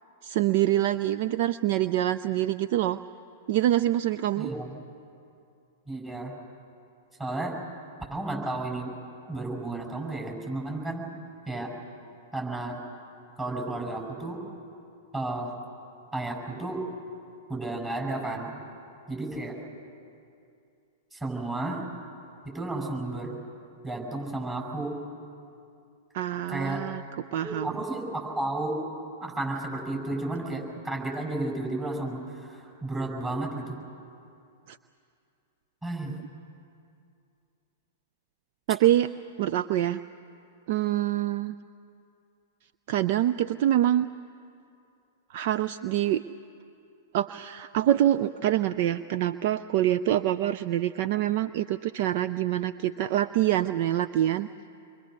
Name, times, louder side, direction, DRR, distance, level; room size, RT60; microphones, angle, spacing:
voice 1, 0.2-3.0 3.5-4.5 26.1-27.0 27.3-27.7 34.7-34.8 38.7-39.1 39.4-40.0 40.7-41.5 42.9-44.1 45.3-46.2 47.1-54.5, right 12 dB, 50° right, 12 dB, 0.5 m, -25 dB
voice 2, 4.4-4.7 5.9-6.3 7.2-7.6 8.1-8.9 9.3-11.0 11.5-11.7 12.3-12.8 13.4-14.4 15.1-15.5 16.1-16.8 17.5-18.5 19.1-19.6 21.1-21.8 22.4-23.4 23.8-25.0 26.5-26.8 27.4-28.8 29.2-33.8 35.8-36.1, right 2 dB, 15° right, 0 dB, 7.4 m, -32 dB
28.0 x 23.0 x 6.7 m, 2.6 s
figure-of-eight pair, 100°, 0 cm